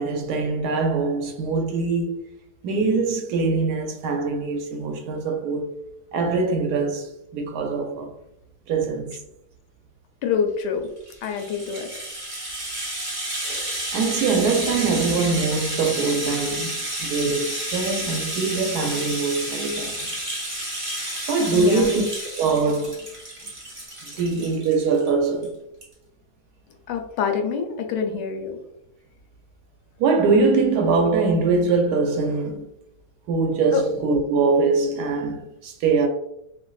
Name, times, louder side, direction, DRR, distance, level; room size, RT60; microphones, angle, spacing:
voice 1, 0.0-2.2 2.6-5.8 6.1-8.1 8.7-9.1 13.4-20.2 21.3-22.0 22.3-23.1 24.0-25.6 30.0-32.6 33.3-36.1, right 4 dB, 75° right, 1.1 m, -23 dB
voice 2, 10.2-10.9 11.2-11.9 21.0-21.2 21.5-21.9 26.9-28.6 33.7-33.8, left 6 dB, 80° left, 1.2 m, -26 dB
Rattle (instrument), 11.0-25.1 25.4-25.5 25.8-25.9, right 1 dB, 35° right, 0.5 m, -31 dB
3.4 x 2.5 x 2.3 m
omnidirectional pair, 1.8 m